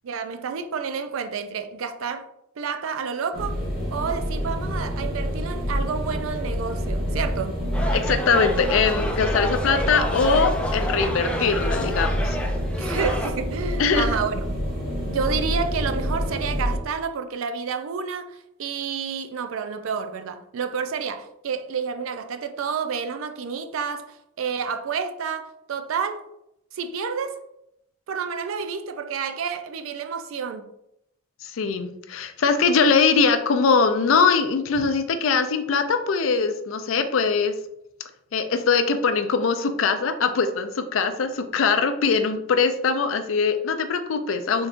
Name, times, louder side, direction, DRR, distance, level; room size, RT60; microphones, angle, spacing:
voice 1, 0.0-2.3 2.6-3.6 3.9-7.6 12.8-14.5 15.1-18.3 18.6-26.2 26.7-27.4 28.1-30.7 34.8-34.9, right 6 dB, 85° right, 0.4 m, -29 dB
sound 1, 3.3-16.8, equal, 45° right, 1.1 m, -27 dB
sound 2, 7.7-13.3, left 1 dB, 5° left, 0.3 m, -30 dB
voice 2, 7.9-12.4 13.8-14.1 31.4-37.5 38.3-44.7, left 5 dB, 80° left, 0.4 m, -22 dB
3.9 x 3.5 x 2.5 m
head